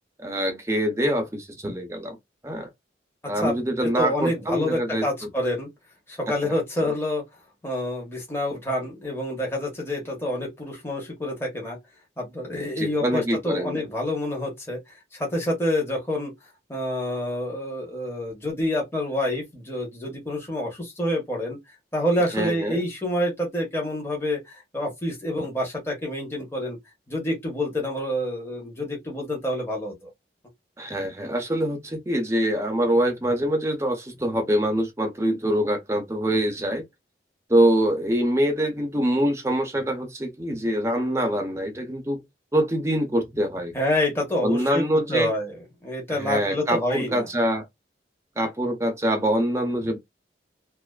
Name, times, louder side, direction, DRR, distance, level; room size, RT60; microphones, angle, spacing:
voice 1, 0.2-2.2 2.4-2.7 3.3-5.1 6.4-6.5 6.8-6.9 12.8-13.8 22.3-22.8 30.8-36.8 37.5-42.2 42.5-43.7 44.4-45.3 46.2-47.7 48.4-50.0, right 1 dB, 15° right, 0.5 m, -24 dB
voice 2, 3.8-5.7 6.1-7.2 7.6-11.8 12.2-16.3 16.7-21.6 21.9-26.8 27.1-30.1 43.7-47.3, left 1 dB, 15° left, 0.8 m, -27 dB
2.4 x 2.3 x 2.2 m
head